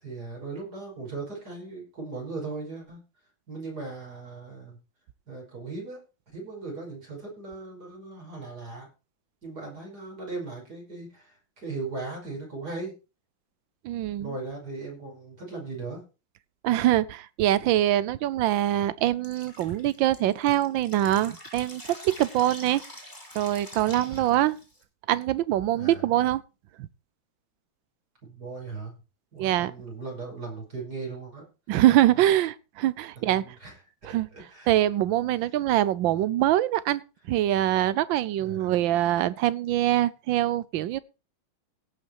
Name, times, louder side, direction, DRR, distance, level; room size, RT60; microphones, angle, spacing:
voice 1, 0.0-3.0 3.5-4.8 5.3-6.0 6.3-8.9 9.4-13.0 14.2-16.0 24.0-24.4 25.7-26.0 28.2-28.9 29.3-31.5 32.1-32.3 33.2-33.8 34.3-34.7 38.4-38.8, right 3 dB, 50° right, -1 dB, 6.0 m, -38 dB
voice 2, 13.8-14.3 16.6-22.8 23.3-24.6 25.1-26.4 26.8-26.9 29.4-29.7 31.7-33.5 34.0-34.3 34.7-37.0 37.3-41.0, right 13 dB, 75° right, 18 dB, 1.4 m, -24 dB
Drip, 19.2-24.8, left 1 dB, 10° left, 2.4 m, -45 dB
17.0 x 5.9 x 4.7 m, 0.31 s
omnidirectional pair, 2.2 m